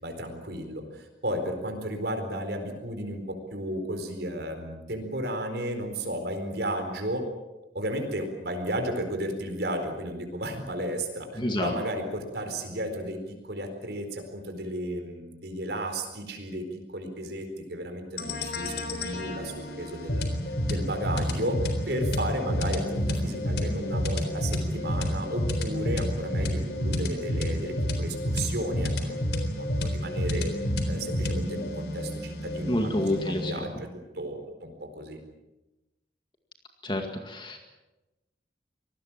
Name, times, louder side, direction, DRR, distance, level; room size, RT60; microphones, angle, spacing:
voice 1, 0.0-7.3 7.7-13.2 13.4-29.2 29.6-30.5 30.9-33.7 34.1-35.2, right 1 dB, 65° right, 5 dB, 4.4 m, -33 dB
voice 2, 11.4-11.7 32.7-33.7 36.8-37.6, left 1 dB, 25° left, 4 dB, 2.1 m, -28 dB
sound 1, 18.2-33.5, left 1 dB, 65° left, 3.9 m, -30 dB
25.5 x 20.0 x 7.4 m, 1.0 s
head